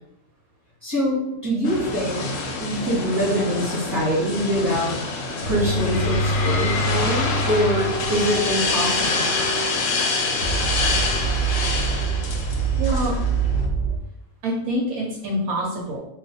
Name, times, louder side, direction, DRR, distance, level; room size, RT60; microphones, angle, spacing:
voice 1, 0.8-2.3 2.6-4.9 5.4-9.3, equal, 15° right, -8 dB, 0.8 m, -24 dB
sound 1, 1.6-13.6, left 3 dB, 65° left, 0.9 m, -26 dB
sound 2, 5.4-14.0, right 3 dB, 55° right, 0.7 m, -25 dB
voice 2, 12.8-13.2 14.4-16.0, right 1 dB, 75° right, -2 dB, 1.1 m, -26 dB
2.4 x 2.4 x 4.0 m, 0.81 s
omnidirectional pair, 1.6 m